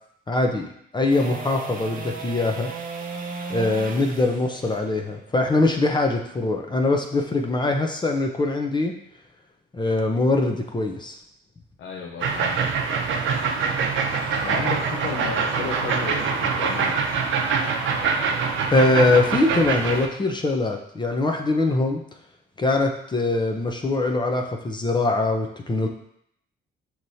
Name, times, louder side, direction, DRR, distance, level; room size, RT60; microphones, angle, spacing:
voice 1, 0.3-0.7 0.9-2.7 3.5-9.0 9.7-11.2 18.7-22.0 22.6-25.9, left 2 dB, 20° left, 2 dB, 0.6 m, -22 dB
Makita-Chainsaw, 1.1-7.2 13.8-13.9, right 4 dB, 45° right, 0.8 m, -36 dB
voice 2, 11.8-12.6 13.7-13.8 14.4-17.1, left 6 dB, 70° left, 0 dB, 0.6 m, -33 dB
sound 1, 12.2-20.1, right 5 dB, 75° right, 0.6 m, -24 dB
6.3 x 2.9 x 2.7 m, 0.71 s
cardioid pair, 90°, 20 cm